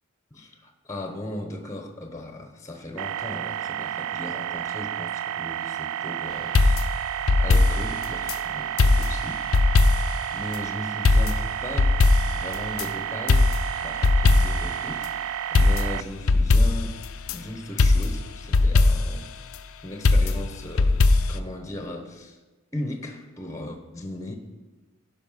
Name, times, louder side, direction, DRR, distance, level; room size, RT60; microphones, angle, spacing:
voice 1, 0.3-6.9 7.4-9.7 10.3-13.5 13.8-17.0 17.3-19.3 19.8-22.4 22.7-24.4, left 1 dB, 15° left, 4 dB, 0.9 m, -37 dB
sound 1, 3.0-16.0, right 11 dB, 85° right, 0.3 m, -31 dB
sound 2, 6.5-8.4 8.8-10.3 10.5-10.6 11.0-12.9 13.3-14.8 15.0-15.1 15.5-17.4 17.8-19.2 20.0-21.4, left 3 dB, 75° left, 0.6 m, -20 dB
15.5 x 5.5 x 5.7 m, 1.2 s
head